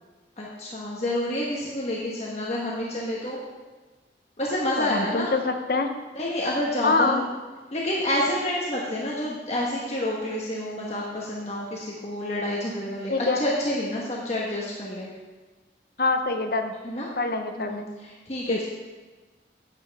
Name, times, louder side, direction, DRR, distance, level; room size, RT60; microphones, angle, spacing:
voice 1, 0.4-3.4 4.4-5.3 6.1-7.2 7.7-15.1 16.8-17.1 17.6-18.6, left 1 dB, 35° left, -4 dB, 1.4 m, -28 dB
voice 2, 4.8-5.9 6.8-7.3 13.1-13.4 16.0-16.7 17.2-17.9 18.5-18.6, left 3 dB, 55° left, 6 dB, 0.9 m, -25 dB
12.0 x 9.0 x 3.6 m, 1.3 s
head